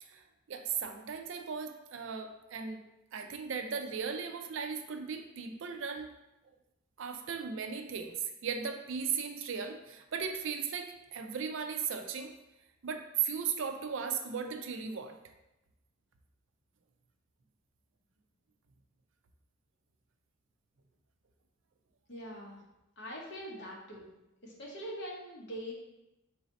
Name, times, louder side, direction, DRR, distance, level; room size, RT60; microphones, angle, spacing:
voice 1, 0.0-6.1 7.0-8.2 8.4-12.3 12.8-15.2, right 6 dB, 70° right, 6 dB, 0.4 m, -37 dB
voice 2, 22.1-22.6 23.0-24.1 24.4-25.7, equal, 55° left, -3 dB, 1.0 m, -43 dB
4.0 x 2.7 x 4.0 m, 0.94 s
head